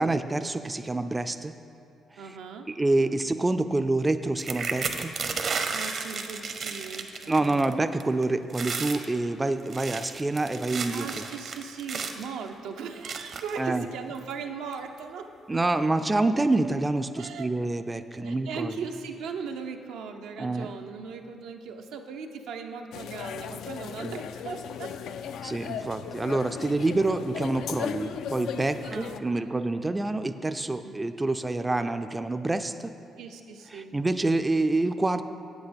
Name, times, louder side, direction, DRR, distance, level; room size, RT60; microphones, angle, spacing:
voice 1, 0.0-1.5 2.7-5.1 7.3-11.1 13.6-13.8 15.5-18.7 20.4-20.7 24.0-24.1 25.4-32.9 33.7-35.2, right 2 dB, 20° right, 9 dB, 0.4 m, -27 dB
voice 2, 2.2-3.2 5.7-7.7 10.9-15.3 17.2-17.5 18.1-24.9 28.8-29.7 30.8-31.0 33.2-34.0, right 5 dB, 85° right, 4 dB, 0.6 m, -38 dB
sound 1, 4.4-7.7 8.0-8.2 8.5-9.1 9.6-12.3 13.0-13.6 14.3-14.4 14.7-15.0, right 5 dB, 55° right, 0.7 m, -33 dB
sound 2, 22.9-29.2, left 8 dB, 80° left, 0.3 m, -36 dB
8.1 x 8.0 x 5.1 m, 2.5 s
cardioid pair, 90°, 0 cm